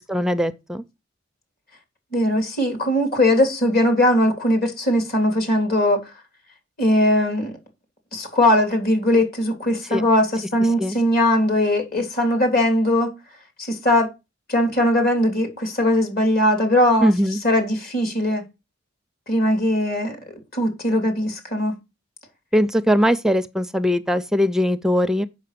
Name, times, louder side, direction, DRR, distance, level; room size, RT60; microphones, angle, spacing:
voice 1, 0.1-0.8 9.9-10.0 10.8-11.0 17.0-17.4 22.5-25.3, equal, 5° right, 0.5 m, -20 dB
voice 2, 2.1-6.1 6.8-7.6 8.1-13.1 13.6-14.1 14.5-17.1 17.4-18.4 19.3-20.2 20.5-21.7, left 1 dB, 50° left, 3.4 m, -20 dB
7.8 x 5.7 x 6.7 m
head